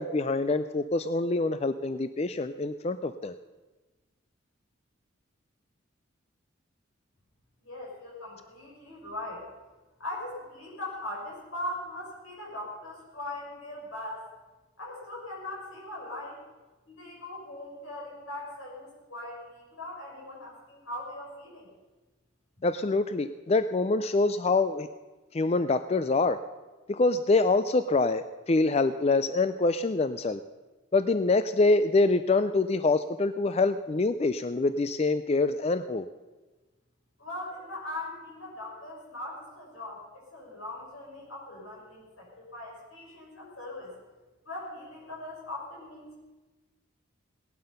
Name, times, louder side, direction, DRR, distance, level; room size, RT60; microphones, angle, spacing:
voice 1, 0.0-3.3 22.6-24.9 25.3-26.4 26.9-30.4 30.9-36.0, left 3 dB, 30° left, 12 dB, 0.4 m, -25 dB
voice 2, 7.6-9.5 10.0-14.2 14.8-16.4 16.9-21.7 37.2-43.9 44.4-46.2, left 1 dB, 85° left, -3 dB, 6.0 m, -40 dB
18.0 x 11.5 x 5.5 m, 1.2 s
head